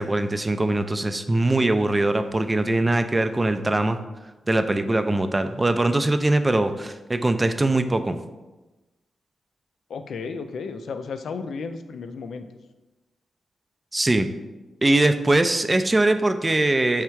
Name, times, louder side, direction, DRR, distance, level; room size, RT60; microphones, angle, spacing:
voice 1, 0.0-4.0 4.5-8.2 13.9-14.3 14.8-17.0, right 2 dB, 25° right, 9 dB, 0.4 m, -22 dB
voice 2, 9.9-12.5, left 5 dB, 75° left, 8 dB, 0.3 m, -33 dB
3.5 x 3.2 x 4.5 m, 1.1 s
supercardioid pair, 50°, 0 cm